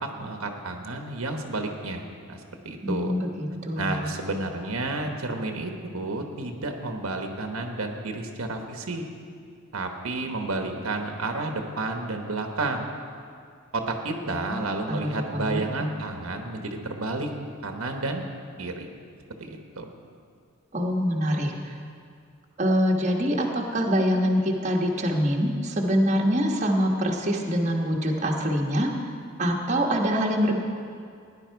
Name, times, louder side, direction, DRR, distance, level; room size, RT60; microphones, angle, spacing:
voice 1, 0.0-2.4 2.6-3.2 3.8-9.0 9.7-12.9 13.7-17.3 17.6-18.2 18.6-18.9 19.4-19.9, right 2 dB, 90° right, 4 dB, 1.3 m, -31 dB
voice 2, 2.8-4.1 14.4-15.9 20.7-21.5 22.6-28.9 29.4-30.6, equal, 35° right, 0 dB, 1.2 m, -25 dB
16.5 x 10.5 x 4.6 m, 2.3 s
head